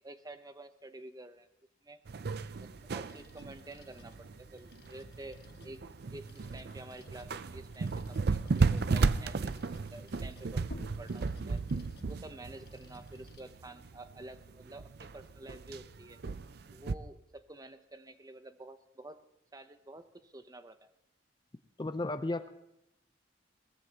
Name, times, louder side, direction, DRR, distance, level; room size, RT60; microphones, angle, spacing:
voice 1, 0.0-1.5 1.8-2.0 2.6-5.8 6.1-8.4 8.7-10.7 11.0-11.6 12.1-16.2 16.7-19.2 19.5-20.9, right 2 dB, 20° right, 10 dB, 0.7 m, -49 dB
sound 1, 2.1-16.9, right 4 dB, 55° right, 0.5 m, -34 dB
sound 2, 2.7-13.5, left 1 dB, 55° left, 1.3 m, -59 dB
sound 3, 17.9-18.0, equal, 80° left, 2.6 m, -53 dB
voice 2, 21.8-22.5, left 2 dB, 25° left, 10 dB, 0.5 m, -34 dB
21.5 x 19.0 x 2.9 m, 0.83 s
head